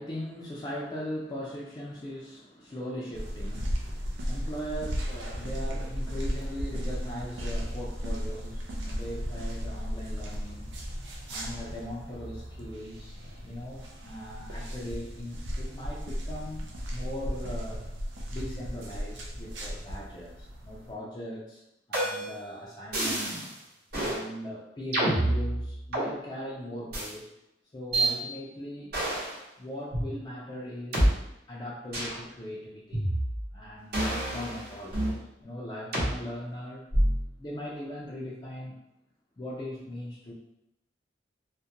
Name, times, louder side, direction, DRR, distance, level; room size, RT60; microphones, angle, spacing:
voice 1, 0.0-10.8 11.3-17.9 18.3-21.6 21.9-23.5 24.0-27.3 27.7-28.9 29.6-31.2 31.5-33.1 33.5-35.1 35.4-36.9 37.4-38.8 39.4-40.3, equal, 20° left, -5 dB, 0.3 m, -39 dB
sound 1, 3.1-20.9, equal, 80° right, 0.5 m, -35 dB
sound 2, 21.9-22.4 22.9-23.5 23.9-24.2 24.9-26.1 26.9-27.1 27.9-28.1 28.9-29.3 29.9-30.0 30.9-31.1 31.9-32.2 32.9-33.5 33.9-35.2 35.9-36.1 36.9-37.3, right 1 dB, 60° right, 0.9 m, -27 dB
2.4 x 2.1 x 2.8 m, 0.84 s
head